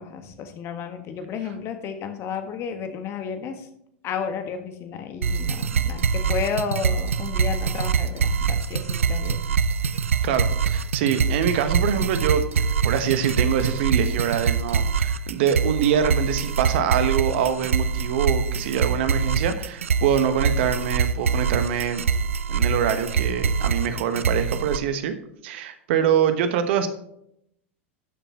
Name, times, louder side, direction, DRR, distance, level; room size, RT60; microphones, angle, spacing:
voice 1, 0.0-3.7 4.0-9.4, left 6 dB, 40° left, 7 dB, 1.5 m, -32 dB
sound 1, 5.2-24.8, right 6 dB, 80° right, 0.4 m, -24 dB
voice 2, 10.2-12.4 12.8-22.0 22.5-25.1 25.4-26.9, right 8 dB, 60° right, 10 dB, 1.2 m, -24 dB
12.5 x 7.0 x 3.0 m, 0.73 s
figure-of-eight pair, 90°, 7 cm